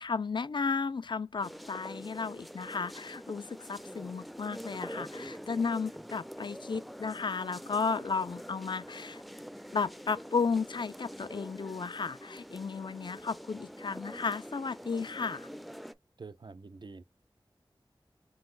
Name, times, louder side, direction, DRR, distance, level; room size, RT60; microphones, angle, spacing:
voice 1, 0.0-9.2 9.7-15.5, left 5 dB, 60° left, 0.4 m, -34 dB
sound 1, 1.4-15.9, equal, ahead, 0.5 m, -45 dB
voice 2, 16.2-17.0, right 4 dB, 55° right, 0.5 m, -46 dB
3.9 x 2.5 x 3.8 m
wide cardioid pair, 50°, 9 cm